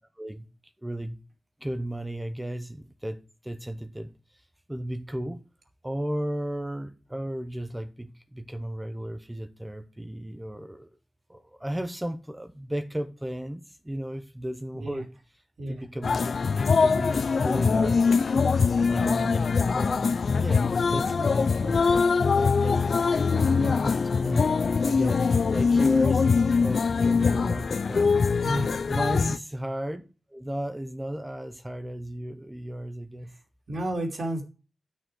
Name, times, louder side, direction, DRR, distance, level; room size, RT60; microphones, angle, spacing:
voice 1, 0.2-0.5 0.8-1.2 1.6-4.4 4.7-5.4 5.8-10.9 11.3-15.1 15.7-16.2 16.6-17.1 17.4-18.1 18.9-21.9 22.3-22.9 23.3-23.7 24.2-24.6 24.8-25.2 25.5-28.2 28.9-30.0 30.3-33.3, right 1 dB, 10° right, 0.8 m, -34 dB
voice 2, 14.7-15.0 15.6-15.9 22.1-22.4 23.5-23.9 28.4-28.8 33.3-33.4 33.7-34.4, right 1 dB, 60° right, 2.8 m, -32 dB
sound 1, 16.0-29.4, left 5 dB, 60° left, 0.4 m, -23 dB
10.5 x 6.6 x 4.6 m
wide cardioid pair, 110°, 0 cm